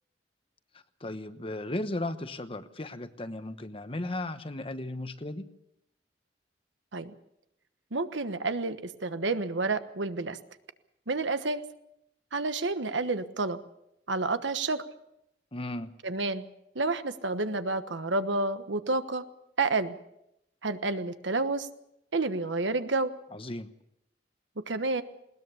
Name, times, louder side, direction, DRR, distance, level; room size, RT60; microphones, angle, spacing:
voice 1, 1.0-5.5 15.5-15.9 23.3-23.7, left 1 dB, 30° left, 11 dB, 1.1 m, -35 dB
voice 2, 7.9-10.4 11.1-11.6 12.3-13.6 14.1-14.8 16.0-16.4 16.7-19.2 19.6-20.0 20.6-21.7 22.1-23.1 24.7-25.0, right 3 dB, 80° right, 10 dB, 1.3 m, -29 dB
20.5 x 19.5 x 7.1 m, 0.81 s
head